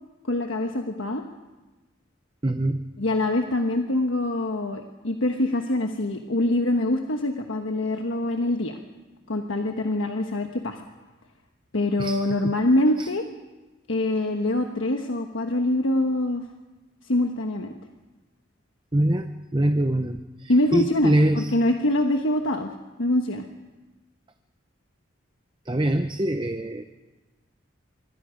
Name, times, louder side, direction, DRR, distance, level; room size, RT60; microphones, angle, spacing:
voice 1, 0.3-1.2 3.0-8.8 9.3-10.8 11.7-13.2 13.9-16.4 17.1-17.7 20.5-22.7 23.0-23.5, left 1 dB, 85° left, 4 dB, 1.3 m, -24 dB
voice 2, 2.4-2.8 12.0-12.5 13.0-13.1 18.9-21.5 25.7-26.9, right 1 dB, 25° right, 7 dB, 0.8 m, -24 dB
26.0 x 22.5 x 5.2 m, 1.2 s
head